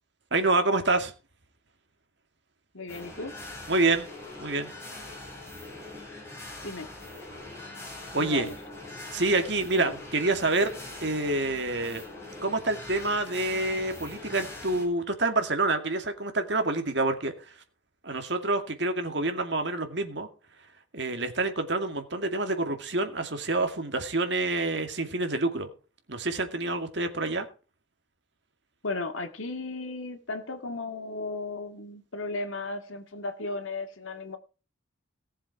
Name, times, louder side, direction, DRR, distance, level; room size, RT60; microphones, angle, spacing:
voice 1, 0.3-1.1 3.7-4.0 4.4-4.7 8.1-8.5 9.1-10.7 11.0-12.0 12.4-17.3 18.0-20.3 20.9-25.7 26.1-27.5, right 2 dB, 60° right, 2.3 m, -27 dB
voice 2, 2.7-3.3 6.6-6.9 8.2-8.6 9.8-10.0 28.8-34.4, left 3 dB, 90° left, 2.2 m, -35 dB
sound 1, 2.9-14.9, left 2 dB, 15° left, 6.0 m, -43 dB
18.0 x 7.4 x 4.7 m
head